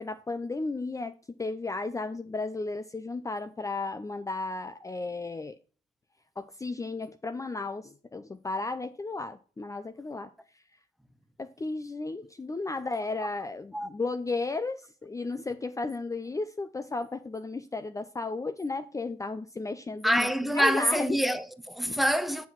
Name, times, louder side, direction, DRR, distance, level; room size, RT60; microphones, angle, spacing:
voice 1, 0.0-5.6 6.4-10.3 11.4-21.2 21.9-22.0, left 3 dB, 20° left, 0.6 m, -34 dB
voice 2, 20.0-22.5, equal, ahead, 0.9 m, -26 dB
7.2 x 6.0 x 5.8 m
supercardioid pair, 75°, 16 cm